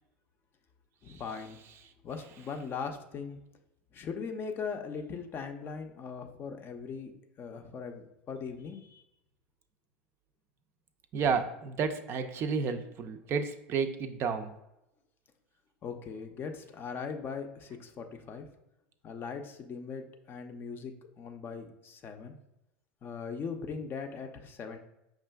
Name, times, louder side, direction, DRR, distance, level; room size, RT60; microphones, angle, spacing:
voice 1, 1.0-1.6 2.0-3.4 3.9-7.1 7.4-9.0 15.8-18.5 19.0-22.3 23.0-24.8, left 5 dB, 35° left, 6 dB, 0.5 m, -40 dB
voice 2, 11.1-14.5, right 5 dB, 40° right, 7 dB, 0.4 m, -31 dB
5.4 x 2.4 x 2.2 m, 0.87 s
hypercardioid pair, 90°, 6 cm